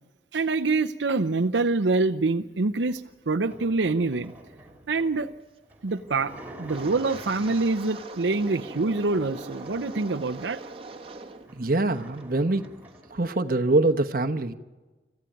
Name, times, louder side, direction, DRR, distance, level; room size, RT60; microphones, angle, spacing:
voice 1, 0.3-4.3 4.9-5.3 5.8-6.3 6.6-10.6, right 3 dB, 80° right, 8 dB, 0.7 m, -25 dB
sound 1, 2.8-8.0 8.5-10.6 11.0-11.1 11.4-13.2, right 1 dB, 10° right, 2.9 m, -47 dB
Wind, 6.6-11.5 11.8-12.2 12.6-12.9, right 3 dB, 30° right, 1.4 m, -42 dB
voice 2, 11.5-12.6 13.1-14.5, right 2 dB, 50° right, 7 dB, 1.1 m, -24 dB
24.5 x 15.0 x 9.2 m, 1.2 s
head